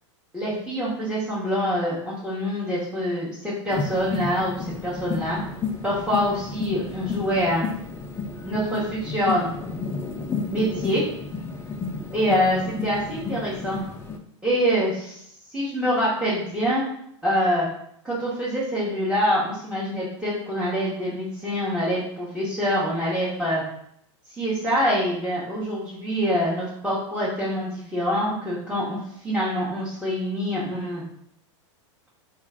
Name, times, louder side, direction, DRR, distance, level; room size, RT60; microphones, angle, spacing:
voice 1, 0.3-5.4 5.8-7.6 8.4-9.5 10.5-11.0 12.1-13.8 14.4-15.2 15.5-16.8 17.2-17.7 18.0-23.6 24.3-29.0 29.2-31.0, equal, 5° right, -9 dB, 0.9 m, -25 dB
sound 1, 3.7-14.2, left 4 dB, 15° left, 0.3 m, -32 dB
3.1 x 2.4 x 3.4 m, 0.71 s
hypercardioid pair, 115°, 16 cm